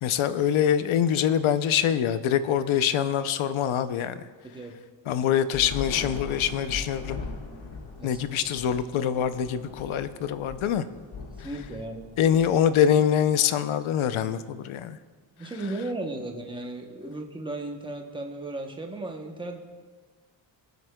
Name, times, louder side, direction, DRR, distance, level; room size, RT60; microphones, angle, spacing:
voice 1, 0.0-4.2 5.1-7.2 8.0-10.9 12.2-15.0, left 9 dB, 85° left, 12 dB, 0.7 m, -24 dB
voice 2, 4.4-4.8 8.0-8.2 11.4-12.4 15.4-19.6, right 2 dB, 10° right, 2 dB, 0.8 m, -35 dB
Thunder / Rain, 5.5-13.0, left 4 dB, 65° left, 1.6 m, -40 dB
22.5 x 8.1 x 2.2 m, 1.5 s
wide cardioid pair, 155°, 47 cm